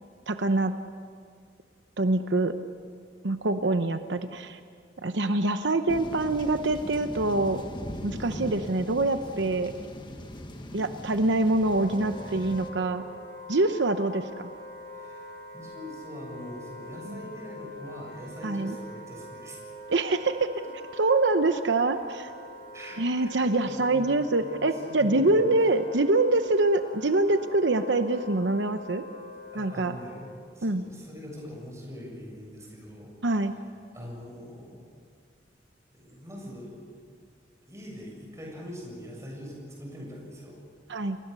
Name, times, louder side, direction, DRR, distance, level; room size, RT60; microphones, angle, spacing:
voice 1, 0.3-0.7 2.0-2.6 3.2-4.6 5.0-7.6 8.0-9.7 10.7-13.0 13.5-14.5 17.1-17.2 18.4-18.8 19.9-20.5 21.0-22.3 23.0-29.0 29.5-30.0 30.6-30.8 33.2-33.6 40.9-41.2, right 2 dB, 75° right, 8 dB, 0.9 m, -25 dB
sound 1, 5.9-12.7, equal, 25° left, 1.5 m, -40 dB
voice 2, 9.4-10.1 10.4-10.9 12.4-12.5 15.0-15.3 15.5-19.6 22.7-24.1 24.5-25.5 29.5-30.2 30.5-33.1 33.9-34.8 35.9-36.7 37.6-40.6, equal, 15° right, -1 dB, 7.3 m, -43 dB
Wind instrument woodwind instrument, 11.6-30.3, left 1 dB, 65° left, 6.6 m, -44 dB
29.5 x 21.0 x 6.9 m, 2.1 s
head